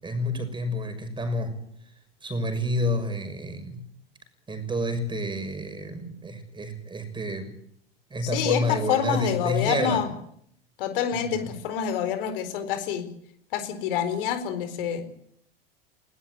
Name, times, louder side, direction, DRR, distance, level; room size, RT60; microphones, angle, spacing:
voice 1, 0.0-1.5 2.2-3.9 4.5-7.5 8.1-10.0 11.1-11.5, left 1 dB, 15° right, 9 dB, 6.3 m, -29 dB
voice 2, 8.2-10.1 10.8-13.1 13.5-15.0, left 9 dB, 65° left, 10 dB, 4.3 m, -27 dB
20.5 x 19.0 x 9.6 m, 0.71 s
hypercardioid pair, 90°, 30 cm